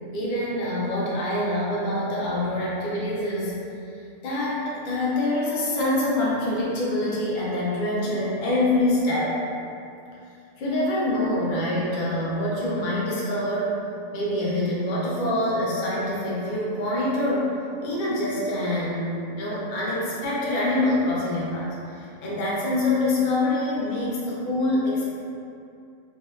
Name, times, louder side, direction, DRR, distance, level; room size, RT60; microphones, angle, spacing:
voice 1, 0.1-3.6 4.2-9.4 10.6-13.7 14.1-17.5 17.8-25.0, left 1 dB, 60° left, -6 dB, 0.5 m, -25 dB
2.7 x 2.2 x 2.2 m, 2.6 s
omnidirectional pair, 1.4 m